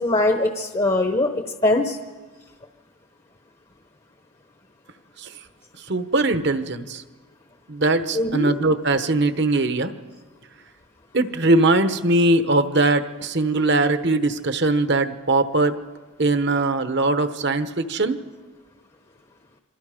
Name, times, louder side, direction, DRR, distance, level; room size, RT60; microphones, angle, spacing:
voice 1, 0.0-2.0 8.1-8.5, left 2 dB, 25° left, 5 dB, 1.0 m, -21 dB
voice 2, 5.9-7.0 7.7-9.9 11.1-15.8 16.2-18.2, right 2 dB, 50° right, 10 dB, 1.1 m, -21 dB
27.0 x 24.5 x 5.1 m, 1.4 s
head